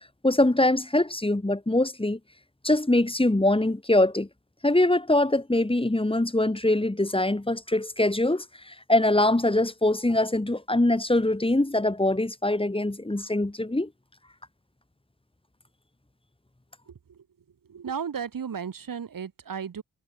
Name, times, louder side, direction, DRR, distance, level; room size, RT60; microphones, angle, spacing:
voice 1, 0.2-2.2 2.6-4.3 4.6-13.9, left 1 dB, 15° left, 4.3 m, -23 dB
voice 2, 17.7-19.8, right 7 dB, 70° right, 4.4 m, -34 dB
cardioid pair, 80°, 35 cm